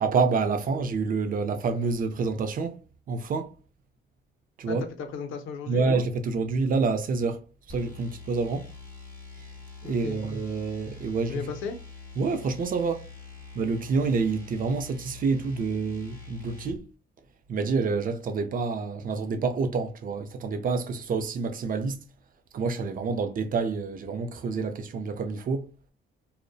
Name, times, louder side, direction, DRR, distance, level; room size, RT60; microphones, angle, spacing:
voice 1, 0.0-2.8 3.1-3.5 4.6-4.8 5.7-8.7 9.8-11.4 12.2-13.1 13.6-16.8 17.5-22.0 22.5-25.7, right 4 dB, 45° right, 0.4 m, -28 dB
voice 2, 4.7-5.9 9.8-10.2 11.3-11.8, left 6 dB, 90° left, 0.5 m, -35 dB
sound 1, 7.7-16.8, left 4 dB, 10° left, 0.8 m, -45 dB
2.6 x 2.0 x 2.3 m
cardioid pair, 90°, 20 cm